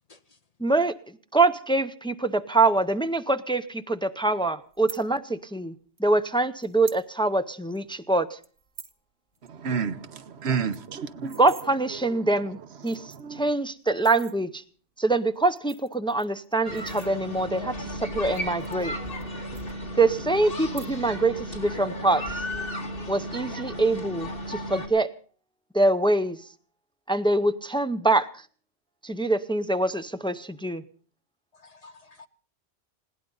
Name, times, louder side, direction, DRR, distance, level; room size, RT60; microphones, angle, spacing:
voice 1, 0.6-5.7 6.0-8.4 11.4-12.6 12.8-14.6 15.0-18.9 20.0-22.2 23.1-25.1 25.7-26.4 27.1-28.4 29.0-30.8, right 2 dB, 5° left, 0.6 m, -24 dB
sound 1, 4.7-5.0 6.0-6.1 6.6-7.0 7.4-7.5 7.7-8.0 8.4-9.0 9.3-9.5 9.8-9.9 10.2-10.3 10.5-11.7 12.4-12.5 12.8-13.4 13.9-14.4 15.3-17.5 18.2-19.3 19.5-20.2 20.6-21.2 21.5-21.9, right 6 dB, 60° right, 1.3 m, -46 dB
voice 2, 9.5-11.4 12.9-13.5, right 6 dB, 90° right, 1.2 m, -31 dB
sound 2, 16.6-24.9, equal, 60° left, 2.8 m, -34 dB
voice 3, 31.5-32.3, left 3 dB, 40° left, 0.9 m, -52 dB
20.5 x 17.0 x 3.9 m
omnidirectional pair, 1.1 m